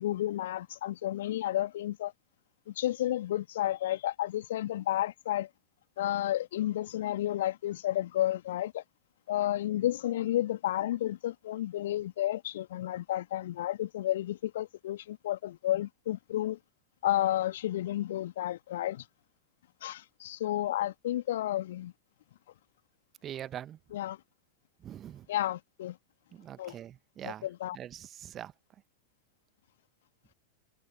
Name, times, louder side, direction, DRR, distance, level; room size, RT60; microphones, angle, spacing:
voice 1, 0.0-2.1 2.7-5.5 6.0-8.8 9.3-16.6 17.0-19.1 19.8-21.9 23.9-24.2 25.3-26.0 26.6-26.8 27.2-27.8, left 13 dB, 55° left, 2.3 m, -31 dB
voice 2, 23.2-23.8 24.8-25.3 26.3-27.5 27.7-28.5, right 10 dB, 30° right, 1.2 m, -43 dB
figure-of-eight pair, 90°, 0 cm